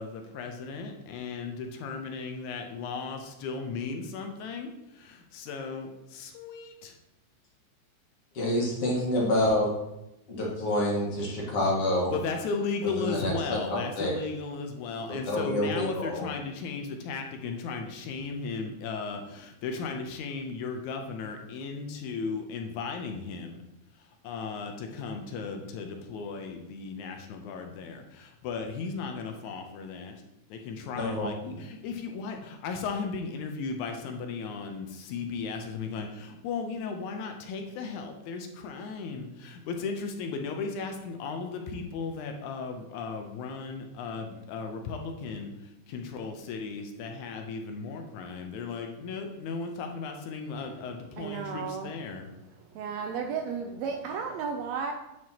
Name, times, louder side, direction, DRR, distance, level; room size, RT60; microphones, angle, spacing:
voice 1, 0.0-7.0 12.1-23.6 24.2-30.1 30.5-52.3, left 4 dB, 80° left, 4 dB, 2.1 m, -36 dB
voice 2, 8.4-9.7 10.3-12.1 13.0-13.6 14.0-14.1 15.1-16.2 31.0-31.3, left 1 dB, 55° left, -4 dB, 2.1 m, -27 dB
voice 3, 51.2-51.9 52.7-54.9, right 6 dB, 80° right, 4 dB, 1.6 m, -33 dB
9.2 x 4.6 x 2.8 m, 0.91 s
omnidirectional pair, 3.5 m